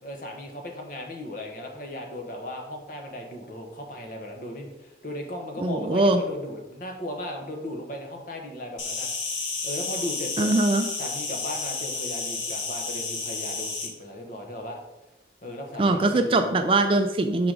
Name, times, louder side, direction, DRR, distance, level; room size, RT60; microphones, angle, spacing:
voice 1, 0.0-9.1 9.6-10.5 11.0-14.8 15.4-16.4, left 1 dB, 45° left, 2 dB, 0.9 m, -36 dB
voice 2, 5.6-6.2 10.4-10.8 15.8-17.5, right 2 dB, 30° right, 7 dB, 0.4 m, -22 dB
Insect, 8.8-13.9, left 4 dB, 90° left, 1.1 m, -31 dB
5.8 x 3.8 x 4.7 m, 1.0 s
head